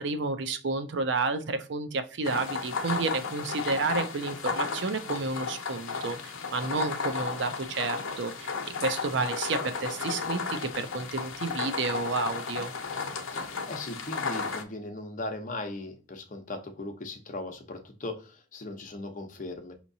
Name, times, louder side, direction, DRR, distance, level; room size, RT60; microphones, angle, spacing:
voice 1, 0.0-8.5 8.8-12.7, right 3 dB, 60° right, 9 dB, 0.5 m, -31 dB
sound 1, 2.2-14.6, left 5 dB, 85° left, 0.7 m, -34 dB
voice 2, 13.3-19.7, left 2 dB, 40° left, 4 dB, 0.7 m, -38 dB
5.6 x 2.9 x 2.6 m, 0.35 s
head